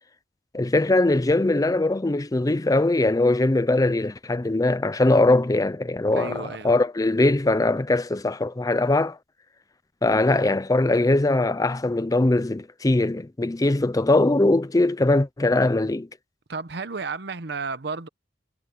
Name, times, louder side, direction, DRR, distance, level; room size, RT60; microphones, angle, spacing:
voice 1, 0.5-9.2 10.0-16.1, left 2 dB, 20° left, 0.5 m, -21 dB
voice 2, 6.1-6.7 16.5-18.1, right 4 dB, 65° right, 1.0 m, -32 dB
head